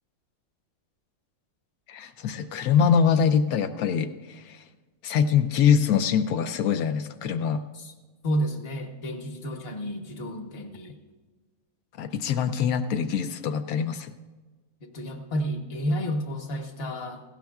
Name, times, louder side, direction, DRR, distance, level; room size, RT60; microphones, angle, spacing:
voice 1, 1.9-4.6 5.0-7.6 12.0-14.1, left 7 dB, 85° left, 9 dB, 1.1 m, -24 dB
voice 2, 8.2-11.0 14.8-17.2, equal, 45° left, 4 dB, 1.3 m, -31 dB
18.0 x 16.0 x 2.3 m, 1.3 s
omnidirectional pair, 1.5 m